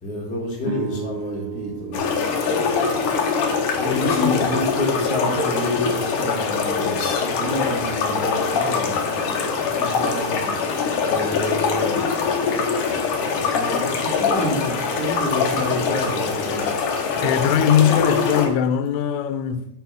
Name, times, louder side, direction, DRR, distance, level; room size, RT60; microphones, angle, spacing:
voice 1, 0.0-2.0 3.8-9.3 9.8-10.5 11.1-12.0 13.4-16.7, left 1 dB, 5° left, 1.4 m, -28 dB
sound 1, 0.6-5.1, right 7 dB, 85° right, 3.0 m, -35 dB
sound 2, 1.9-18.5, left 5 dB, 65° left, 2.2 m, -23 dB
voice 2, 3.9-4.4 17.2-19.7, left 9 dB, 90° left, 3.2 m, -20 dB
11.0 x 4.1 x 6.0 m
omnidirectional pair, 5.3 m